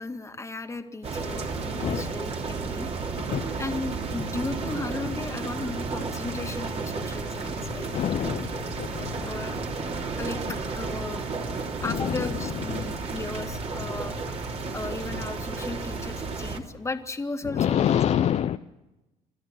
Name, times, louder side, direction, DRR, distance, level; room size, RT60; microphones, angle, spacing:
voice 1, 0.0-2.9 3.6-8.3 9.2-9.6 10.2-11.3 11.8-14.2 14.7-18.2, left 3 dB, 20° left, 7 dB, 2.0 m, -35 dB
sound 1, 1.0-16.6, right 4 dB, 40° right, 3.2 m, -32 dB
voice 2, 1.8-2.1 3.2-3.6 4.2-4.3 7.9-9.3 10.5-10.6 11.8-13.0 17.4-18.6, left 10 dB, 45° left, 10 dB, 0.6 m, -27 dB
27.5 x 13.0 x 8.1 m, 1.0 s
supercardioid pair, 75°, 16 cm